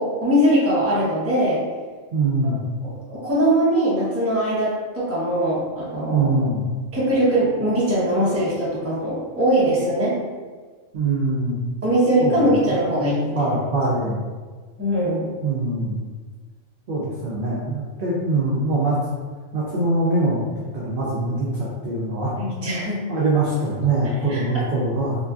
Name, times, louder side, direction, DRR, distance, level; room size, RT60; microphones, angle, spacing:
voice 1, 0.0-1.6 2.4-2.5 2.8-6.5 6.9-10.2 11.8-13.6 14.8-15.3 18.0-18.2 22.4-23.0 24.3-24.4, right 1 dB, 15° right, -9 dB, 0.6 m, -21 dB
voice 2, 2.1-2.6 6.1-6.6 10.9-11.6 12.2-12.8 13.3-14.2 15.4-16.0 16.9-19.0 19.5-20.4 20.7-22.3 23.1-25.2, right 2 dB, 60° right, -6 dB, 0.6 m, -23 dB
3.0 x 2.5 x 2.3 m, 1.5 s
omnidirectional pair, 1.4 m